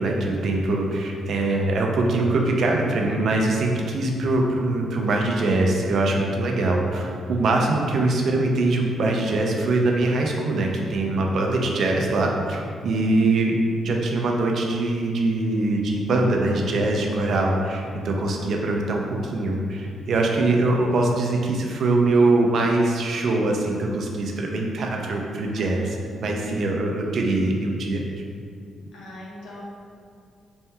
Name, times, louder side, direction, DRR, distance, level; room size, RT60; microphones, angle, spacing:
voice 1, 0.0-13.5 13.8-25.9 26.2-28.0, right 2 dB, 65° right, 0 dB, 0.6 m, -23 dB
voice 2, 13.0-13.3 25.5-25.8 28.9-29.6, left 1 dB, 90° left, -5 dB, 1.0 m, -42 dB
4.3 x 3.5 x 2.9 m, 2.3 s
cardioid pair, 80°, 0 cm